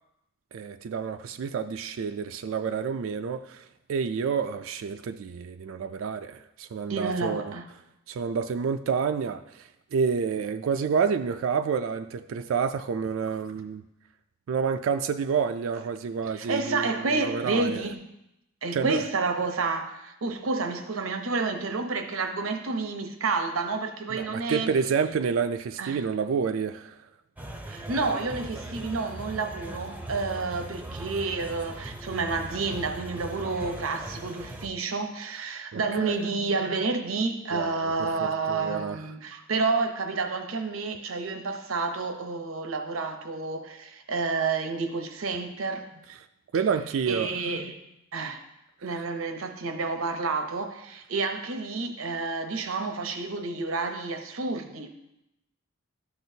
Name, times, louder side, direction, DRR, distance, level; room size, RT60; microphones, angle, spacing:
voice 1, 0.5-7.5 8.1-13.8 14.5-17.8 18.7-19.0 24.1-27.1 35.7-36.1 37.5-39.1 46.5-47.4 48.8-49.0, right 6 dB, 70° right, 0.3 m, -29 dB
voice 2, 6.9-7.6 16.3-18.0 18.6-24.7 25.8-26.0 27.7-45.8 47.1-47.7 48.1-48.4 48.8-54.9, right 3 dB, 85° right, 0.8 m, -30 dB
sound 1, 27.4-34.7, right 1 dB, 10° right, 0.6 m, -39 dB
13.0 x 6.0 x 2.7 m
head